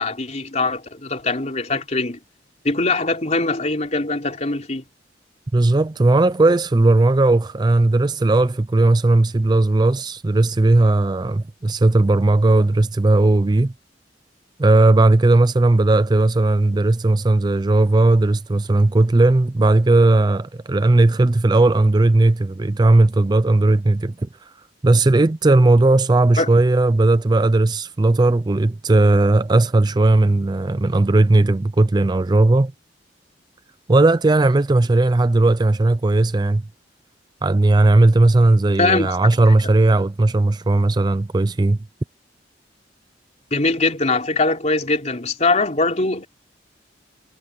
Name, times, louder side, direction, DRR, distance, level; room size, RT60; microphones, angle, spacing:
voice 1, 0.0-2.2 2.6-4.8 26.4-26.5 38.8-39.2 43.5-46.3, left 3 dB, 40° left, 3.8 m, -21 dB
voice 2, 5.5-13.7 14.6-24.3 24.8-32.7 33.9-36.6 37.4-41.8, right 2 dB, 25° right, 0.4 m, -16 dB
head